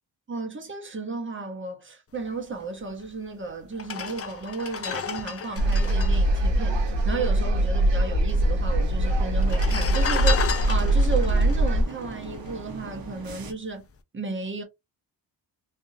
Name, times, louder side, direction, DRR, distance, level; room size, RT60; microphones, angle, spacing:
voice 1, 0.3-13.9 14.1-14.6, right 3 dB, 25° right, 1.0 m, -33 dB
sound 1, 3.1-3.2 3.7-7.4 7.7-7.8 7.9-8.6 9.3-12.8 13.3-13.5, left 7 dB, 35° left, 0.4 m, -33 dB
sound 2, 5.6-11.8, right 1 dB, 70° right, 1.2 m, -22 dB
sound 3, 8.3-13.5, right 2 dB, 50° right, 0.9 m, -41 dB
3.4 x 2.6 x 2.7 m
wide cardioid pair, 135°, 44 cm